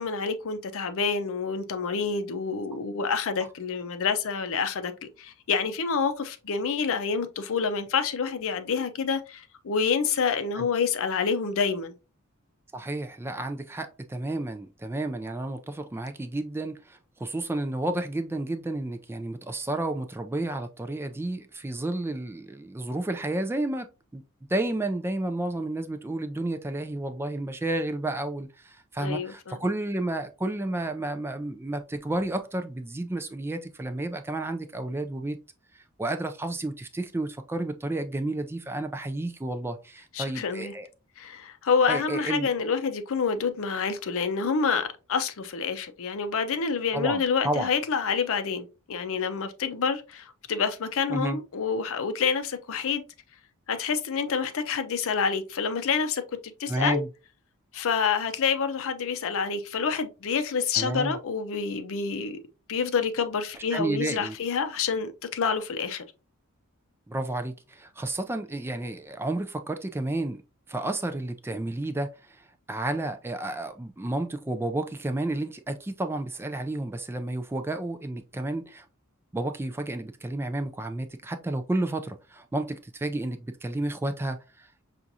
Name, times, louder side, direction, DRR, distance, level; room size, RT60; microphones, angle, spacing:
voice 1, 0.0-11.9 29.0-29.6 40.1-40.7 41.2-53.0 53.7-56.2 56.6-57.0 57.7-62.4 62.7-66.0, left 5 dB, 65° left, 0.5 m, -28 dB
voice 2, 12.7-24.2 24.5-35.4 35.7-40.9 41.9-42.5 46.9-47.7 51.1-51.4 56.7-57.1 60.8-61.2 63.7-64.4 67.1-70.4 70.7-78.9 79.3-84.8, right 2 dB, 10° right, 0.3 m, -31 dB
5.8 x 2.5 x 2.7 m
head